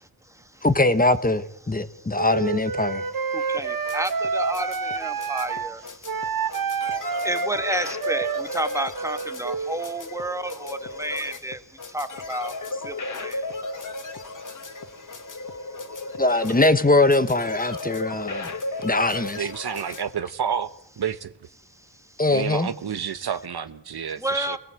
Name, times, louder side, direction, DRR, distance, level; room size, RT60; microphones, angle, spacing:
voice 1, 0.6-3.0 16.2-18.5 18.8-19.5 22.2-22.7, left 2 dB, 20° left, 1.3 m, -21 dB
Wind instrument woodwind instrument, 2.1-5.7 6.0-9.8, right 5 dB, 60° right, 1.3 m, -29 dB
voice 2, 3.3-6.5 6.7-11.6 11.9-12.6 12.8-13.5 16.3-16.4 24.2-24.6, right 1 dB, 10° right, 1.8 m, -31 dB
sound 1, 3.6-20.0, left 2 dB, 55° left, 2.3 m, -35 dB
voice 3, 19.4-21.3 22.3-24.6, right 7 dB, 80° right, 1.2 m, -30 dB
27.5 x 18.0 x 7.9 m
wide cardioid pair, 95°, 38 cm